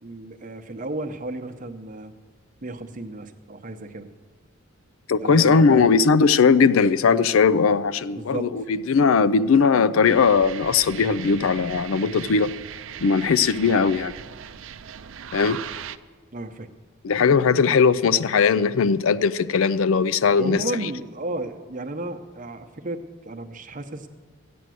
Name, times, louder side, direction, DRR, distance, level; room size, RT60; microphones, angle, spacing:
voice 1, 0.0-2.1 2.6-4.1 5.2-5.8 8.1-8.5 16.3-16.7 20.4-24.1, right 2 dB, 40° right, 0.8 m, -33 dB
voice 2, 5.1-12.5 13.0-14.1 15.3-15.6 17.0-20.9, left 5 dB, 75° left, 0.4 m, -19 dB
sound 1, 10.0-16.0, right 8 dB, 65° right, 0.5 m, -38 dB
14.0 x 9.3 x 7.7 m
head